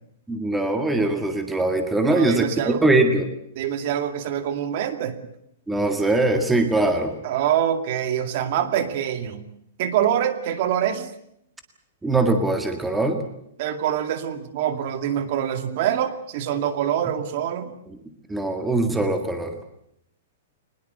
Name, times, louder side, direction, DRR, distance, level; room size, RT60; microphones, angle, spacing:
voice 1, 0.3-3.3 5.7-7.1 12.0-13.2 18.3-19.5, right 2 dB, 5° right, 6 dB, 1.9 m, -21 dB
voice 2, 2.1-2.8 3.6-5.2 7.2-9.4 9.8-11.1 13.6-17.7, right 10 dB, 40° right, 10 dB, 2.3 m, -25 dB
23.0 x 20.5 x 8.1 m, 0.74 s
hypercardioid pair, 165°, 0 cm